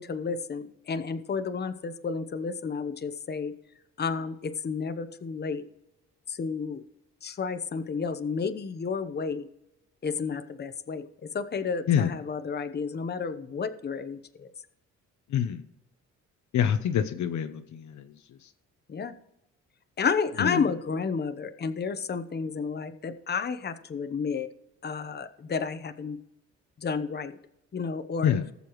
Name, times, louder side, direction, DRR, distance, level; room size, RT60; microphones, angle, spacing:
voice 1, 0.0-3.5 4.0-5.7 6.3-6.8 7.2-9.5 10.0-11.0 11.3-14.5 18.9-19.1 20.0-24.5 24.8-26.2 26.8-27.3 27.7-28.3, left 5 dB, 35° left, 10 dB, 0.9 m, -31 dB
voice 2, 15.3-15.7 16.5-18.1 18.4-18.5 20.4-20.6 28.2-28.5, left 9 dB, 70° left, 8 dB, 0.9 m, -26 dB
20.0 x 6.9 x 3.1 m, 0.87 s
cardioid pair, 90°, 30 cm